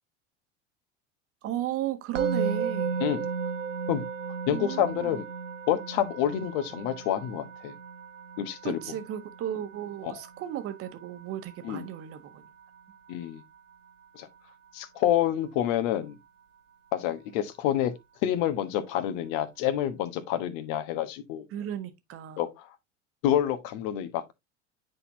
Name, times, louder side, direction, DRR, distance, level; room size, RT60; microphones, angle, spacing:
voice 1, 1.4-3.0 4.5-5.2 8.6-12.4 21.5-22.4, right 11 dB, 40° right, 1.4 m, -35 dB
Musical instrument, 2.1-13.3, right 5 dB, 80° right, 0.7 m, -35 dB
voice 2, 4.5-5.2 5.7-7.7 8.4-8.8 10.0-10.2 11.6-11.8 13.1-13.4 14.1-14.3 14.7-16.2 16.9-17.9 18.2-21.4 22.4-22.7 23.2-24.3, left 11 dB, 50° left, 1.3 m, -28 dB
9.6 x 4.2 x 2.8 m
figure-of-eight pair, 80°, 37 cm